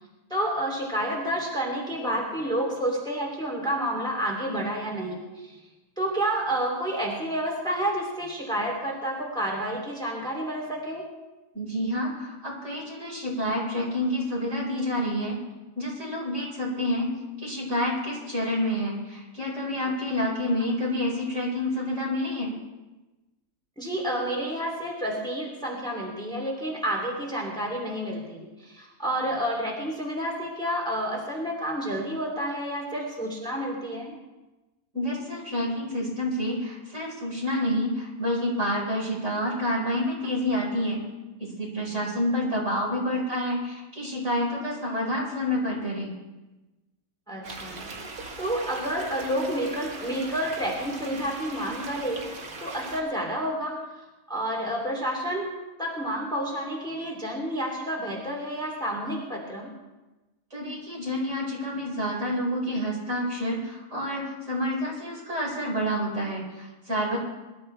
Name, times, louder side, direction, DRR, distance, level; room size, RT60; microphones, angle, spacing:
voice 1, 0.3-5.5 6.0-11.0 23.8-34.2 47.3-47.9 48.4-53.8 54.3-55.5 55.8-59.7, right 1 dB, 5° left, -2 dB, 2.8 m, -30 dB
voice 2, 11.5-15.4 15.7-17.1 17.4-22.5 34.9-41.0 41.4-46.2 60.5-67.2, left 1 dB, 50° right, -4 dB, 5.3 m, -28 dB
sound 1, 47.4-53.0, right 3 dB, 85° right, 2.1 m, -40 dB
24.0 x 12.5 x 3.4 m, 1.1 s
omnidirectional pair, 1.6 m